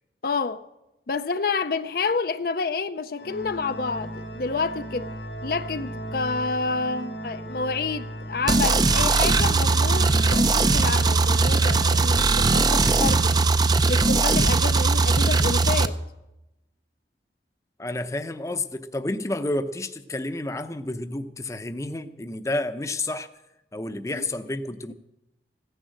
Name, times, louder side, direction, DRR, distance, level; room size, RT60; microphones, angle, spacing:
voice 1, 0.2-0.6 1.1-5.1 5.4-13.3 13.9-16.0 24.1-24.2, left 4 dB, 55° left, 0.5 m, -29 dB
Organ, 3.2-14.0, right 1 dB, 85° left, 2.5 m, -36 dB
sound 1, 8.5-15.9, right 3 dB, 25° right, 0.5 m, -20 dB
voice 2, 17.8-23.3 23.7-24.9, left 2 dB, 15° left, 0.6 m, -30 dB
16.0 x 10.0 x 7.6 m
head